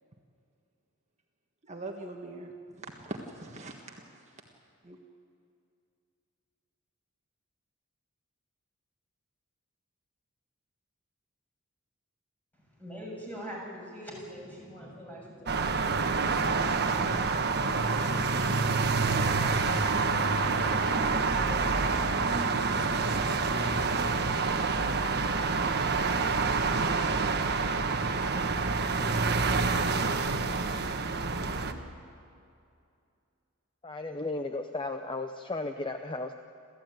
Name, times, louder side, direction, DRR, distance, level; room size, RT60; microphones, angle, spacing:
voice 1, 1.7-4.4 4.8-5.0, right 2 dB, 30° right, 1 dB, 1.5 m, -42 dB
voice 2, 12.5-25.3, equal, 10° left, -3 dB, 7.1 m, -46 dB
sound 1, 15.5-31.7, right 4 dB, 50° right, 1.3 m, -27 dB
voice 3, 33.8-36.3, left 2 dB, 25° left, 7 dB, 0.7 m, -34 dB
28.5 x 14.5 x 9.2 m, 2.4 s
head